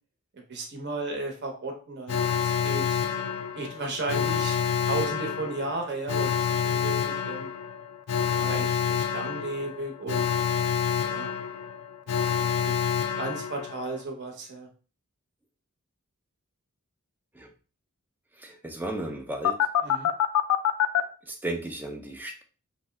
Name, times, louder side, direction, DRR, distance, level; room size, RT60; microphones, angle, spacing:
voice 1, 0.3-3.0 3.6-7.5 8.3-10.2 11.0-11.3 12.1-12.9 13.2-14.7 19.8-20.1, right 2 dB, 50° right, 2 dB, 0.7 m, -35 dB
Alarm, 2.1-14.0 19.4-21.0, left 8 dB, 90° left, 0.3 m, -27 dB
voice 2, 8.2-8.5 17.3-17.5 18.3-19.7 21.2-22.4, right 1 dB, 10° right, 3 dB, 0.3 m, -35 dB
2.6 x 2.0 x 3.2 m, 0.37 s
head